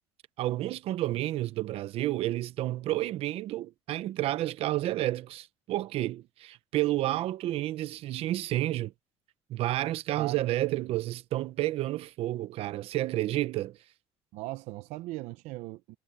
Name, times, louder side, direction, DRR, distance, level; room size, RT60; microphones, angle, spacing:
voice 1, 0.4-8.9 9.5-13.8, right 15 dB, 60° right, 1.1 m, -30 dB
voice 2, 10.1-10.9 14.3-16.0, right 19 dB, 75° right, 0.8 m, -39 dB
cardioid pair, 125°, 11 cm